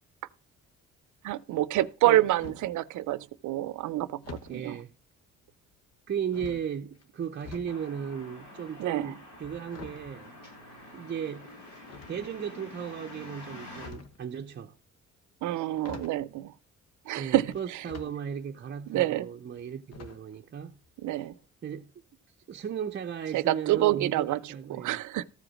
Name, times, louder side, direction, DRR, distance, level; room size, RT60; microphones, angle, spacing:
voice 1, 1.2-4.8 8.8-9.1 15.4-16.5 17.1-17.9 18.9-19.3 21.0-21.3 23.3-25.3, right 15 dB, 80° right, 0.6 m, -27 dB
sound 1, 2.0-2.8 4.2-4.6 5.5-5.9 6.3-7.7 8.0-11.1 11.8-12.6 13.5-14.2 15.4-15.5 15.8-16.3 17.5-18.1 18.6-18.7 19.9-20.4 20.7-20.9 21.2-21.3, left 5 dB, 55° left, 1.3 m, -47 dB
voice 2, 4.5-4.9 6.1-10.3 10.9-11.5 12.1-14.8 17.2-20.8 21.6-21.9 22.5-25.0, right 8 dB, 35° right, 0.6 m, -36 dB
sound 2, 7.7-13.9, left 2 dB, 85° left, 7.8 m, -47 dB
14.0 x 4.9 x 6.1 m
cardioid pair, 90°, 30 cm